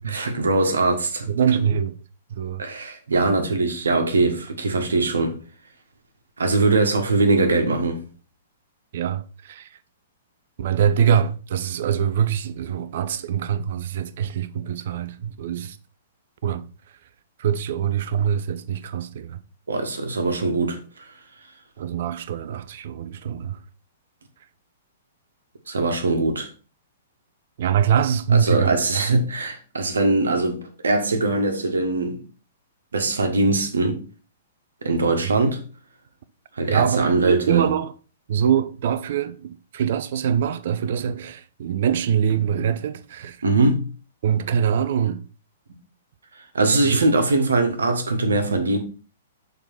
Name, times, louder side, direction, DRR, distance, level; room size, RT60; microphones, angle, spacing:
voice 1, 0.0-1.3 2.6-5.4 6.4-8.0 19.7-20.8 25.7-26.5 28.3-32.2 32.9-34.0 34.8-35.6 36.6-37.7 43.4-43.8 46.5-48.8, right 3 dB, 70° right, 1.7 m, -21 dB
voice 2, 1.3-2.0 2.3-2.6 8.9-9.7 10.6-15.8 16.4-16.6 17.4-19.4 21.8-23.6 27.6-28.7 36.7-37.9 38.3-43.4 44.2-45.2 46.8-47.0, right 8 dB, 55° right, 0.7 m, -23 dB
6.9 x 4.0 x 5.8 m
figure-of-eight pair, 110°, 0 cm